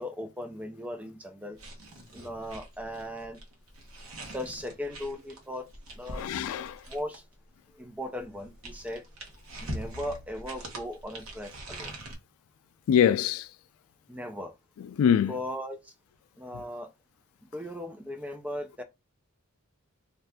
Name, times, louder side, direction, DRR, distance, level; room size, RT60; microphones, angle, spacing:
voice 1, 0.0-1.6 2.1-3.4 4.3-5.7 5.9-6.3 6.9-7.2 7.7-9.0 9.6-11.9 14.1-14.5 15.3-15.9 16.4-16.9 17.5-18.8, left 1 dB, 5° right, 0.3 m, -37 dB
sound 1, 1.5-7.3 8.2-12.2, right 1 dB, 80° right, 1.0 m, -43 dB
voice 2, 6.1-6.8 12.9-13.5 14.8-15.3, left 8 dB, 90° left, 0.3 m, -24 dB
2.6 x 2.3 x 3.4 m
head